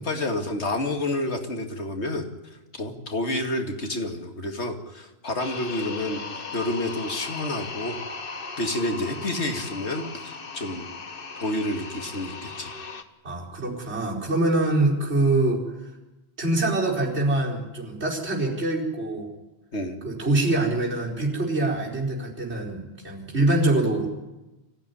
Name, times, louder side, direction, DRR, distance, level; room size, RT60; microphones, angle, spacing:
voice 1, 0.0-2.3 2.8-6.2 6.5-8.0 8.6-10.8 11.4-12.7 19.7-20.0, left 1 dB, 90° left, 4 dB, 2.5 m, -29 dB
sound 1, 5.4-13.0, left 4 dB, 55° left, 1.5 m, -37 dB
voice 2, 13.2-15.6 16.4-19.3 20.0-24.1, right 2 dB, 80° right, -3 dB, 5.0 m, -24 dB
24.5 x 15.5 x 9.9 m, 1.1 s
omnidirectional pair, 1.1 m